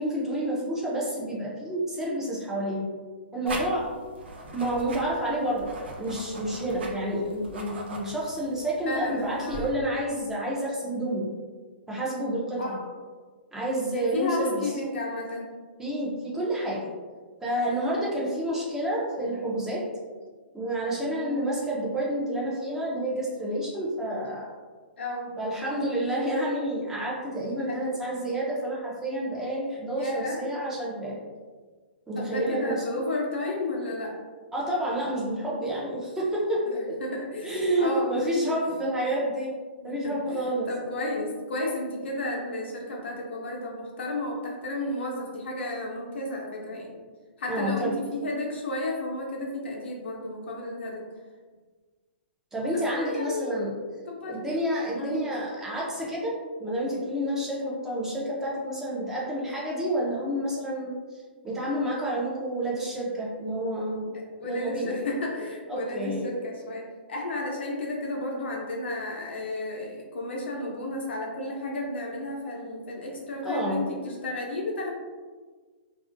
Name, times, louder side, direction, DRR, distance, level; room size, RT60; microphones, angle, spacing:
voice 1, 0.0-2.9 3.3-3.9 4.5-5.7 6.0-11.3 11.9-12.8 13.5-14.7 15.8-16.9 17.4-19.8 20.5-24.5 25.4-31.2 32.1-33.0 34.5-36.8 37.4-39.5 39.8-40.7 47.5-48.0 52.5-53.7 54.3-64.1 64.4-65.0 65.7-66.3 73.4-73.8, right 1 dB, 10° right, -5 dB, 0.5 m, -29 dB
sound 1, 3.5-9.7, right 1 dB, 70° right, 0.5 m, -40 dB
voice 2, 8.8-9.7 12.6-12.9 13.9-15.5 17.8-18.1 21.2-21.5 25.0-25.3 27.7-28.0 29.9-30.4 32.2-34.2 36.7-38.8 39.8-46.9 47.4-51.1 52.7-53.6 54.1-54.4 54.9-55.1 64.4-74.9, left 1 dB, 80° left, -1 dB, 0.6 m, -33 dB
2.4 x 2.1 x 2.5 m, 1.4 s
hypercardioid pair, 140°, 6 cm